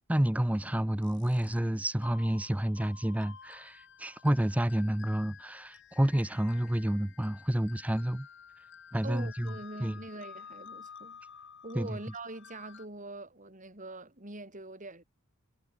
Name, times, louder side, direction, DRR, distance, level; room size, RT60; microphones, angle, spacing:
voice 1, 0.1-8.3 8.9-9.5 9.8-10.0 11.7-12.0, right 1 dB, 5° right, 0.5 m, -29 dB
sound 1, 1.0-1.6 2.0-12.9, left 7 dB, 55° left, 2.6 m, -52 dB
voice 2, 9.0-11.2 11.6-15.0, right 2 dB, 35° right, 5.2 m, -43 dB
head